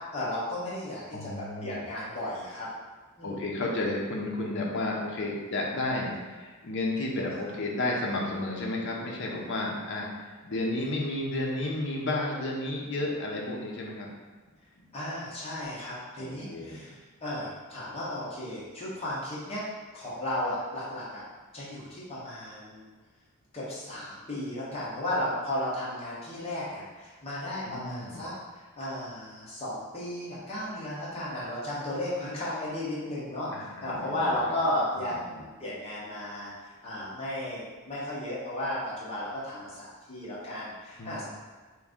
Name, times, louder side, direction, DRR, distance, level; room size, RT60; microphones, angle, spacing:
voice 1, 0.1-1.3 1.6-2.7 3.2-3.4 14.9-19.6 19.9-21.2 21.5-22.8 23.5-28.3 28.8-41.2, left 1 dB, 30° left, -9 dB, 0.9 m, -34 dB
voice 2, 1.1-1.8 3.2-14.1 14.8-14.9 16.2-16.9 27.6-28.3 33.5-34.4 35.3-35.4 41.0-41.2, left 2 dB, 55° left, -1 dB, 0.6 m, -32 dB
3.0 x 2.5 x 3.6 m, 1.4 s
head